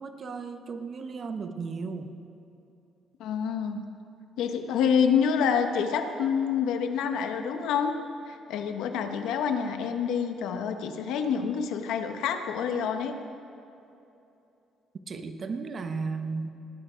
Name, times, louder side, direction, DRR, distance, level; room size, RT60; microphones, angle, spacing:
voice 1, 0.0-2.2 15.1-16.5, right 4 dB, 35° right, 8 dB, 0.8 m, -35 dB
voice 2, 3.2-3.9 4.4-7.9 8.3-13.1, left 7 dB, 90° left, 6 dB, 1.0 m, -27 dB
18.5 x 9.1 x 5.1 m, 2.8 s
cardioid pair, 155°, 0 cm